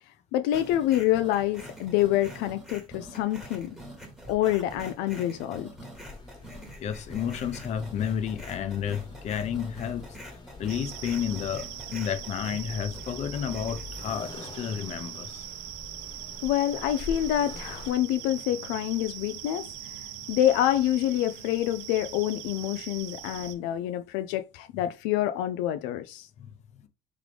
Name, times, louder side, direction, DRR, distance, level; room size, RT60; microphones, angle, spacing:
voice 1, 0.3-3.8 4.3-5.7 16.4-26.3, left 12 dB, 80° left, 0.4 m, -27 dB
sound 1, 0.5-14.1, right 1 dB, ahead, 1.2 m, -45 dB
Accelerating revving vroom, 5.9-17.9, left 4 dB, 25° left, 1.1 m, -45 dB
voice 2, 6.8-10.1 10.6-15.4 26.4-26.5, left 8 dB, 45° left, 0.7 m, -31 dB
sound 2, 10.7-23.5, right 12 dB, 90° right, 0.7 m, -41 dB
3.6 x 3.2 x 3.4 m
cardioid pair, 120°, 17 cm